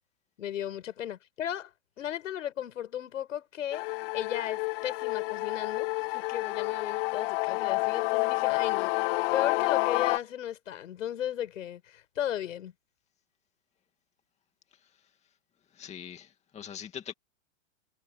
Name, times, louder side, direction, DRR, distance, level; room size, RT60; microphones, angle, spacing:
voice 1, 0.4-3.9 4.1-5.9 6.1-8.9 9.3-12.7, left 11 dB, 75° left, 7.4 m, -35 dB
sound 1, 3.7-10.2, left 24 dB, 45° left, 2.6 m, -29 dB
voice 2, 15.7-17.1, left 8 dB, 15° left, 2.3 m, -42 dB
hypercardioid pair, 140°, 39 cm